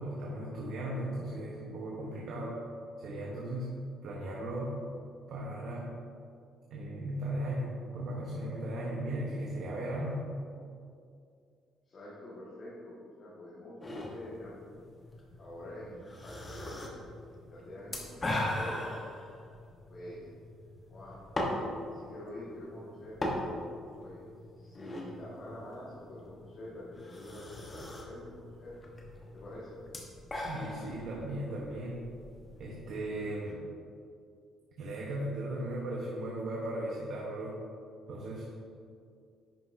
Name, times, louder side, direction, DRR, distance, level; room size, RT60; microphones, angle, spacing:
voice 1, 0.0-2.6 3.0-3.8 4.0-4.8 5.3-6.0 6.7-10.3 30.4-32.0 32.6-33.7 34.8-37.6 38.1-38.5, right 1 dB, 65° right, -4 dB, 1.1 m, -37 dB
voice 2, 11.8-14.6 15.4-16.9 17.4-18.8 19.9-20.3 20.9-21.2 21.5-23.2 23.8-24.3 24.6-28.7 29.3-29.8, left 1 dB, 40° left, -8 dB, 1.8 m, -47 dB
sound 1, 13.8-33.5, left 1 dB, 25° left, 1.2 m, -40 dB
10.5 x 5.9 x 2.7 m, 2.3 s
cardioid pair, 120°, 0 cm